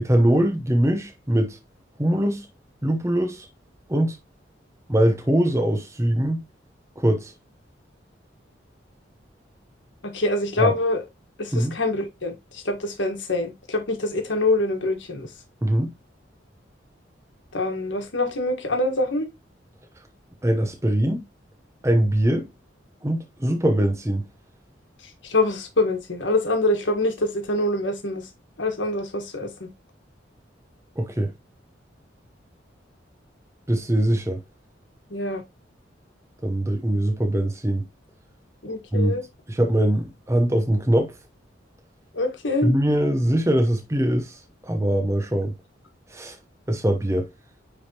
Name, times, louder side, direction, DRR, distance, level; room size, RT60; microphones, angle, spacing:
voice 1, 0.0-1.6 2.0-2.5 2.8-3.5 3.9-4.2 4.9-6.4 7.0-7.3 10.6-10.7 11.5-11.7 15.6-15.9 20.4-21.2 21.8-22.5 23.0-24.3 31.0-31.3 33.7-34.4 36.4-37.8 38.9-39.2 39.5-41.1 42.6-45.5 46.1-46.4 46.7-47.3, right 1 dB, 15° right, 0.8 m, -22 dB
voice 2, 10.0-11.0 11.4-15.3 17.5-19.3 25.3-28.2 28.6-29.7 35.1-35.4 38.6-39.2 42.1-42.7, left 2 dB, 75° left, 1.5 m, -25 dB
9.4 x 3.5 x 2.8 m
head